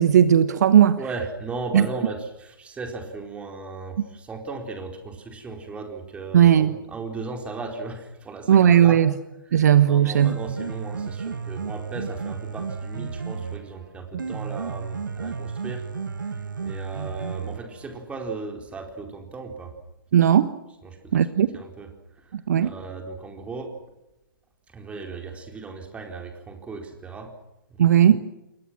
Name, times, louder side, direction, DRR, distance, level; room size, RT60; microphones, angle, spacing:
voice 1, 0.0-1.0 1.7-1.8 6.3-6.7 8.5-9.1 9.5-10.3 20.1-20.5 21.1-21.5 22.3-22.7 27.8-28.2, right 9 dB, 50° right, 13 dB, 1.3 m, -16 dB
voice 2, 1.0-9.0 9.5-15.9 16.2-19.8 20.8-21.3 21.5-21.9 22.2-22.3 22.6-23.8 24.7-27.3 27.7-27.8, right 3 dB, 10° right, 4 dB, 4.4 m, -36 dB
Piano, 10.0-18.0, right 5 dB, 70° right, 1.3 m, -33 dB
28.5 x 23.0 x 6.2 m, 0.96 s
figure-of-eight pair, 120°, 11 cm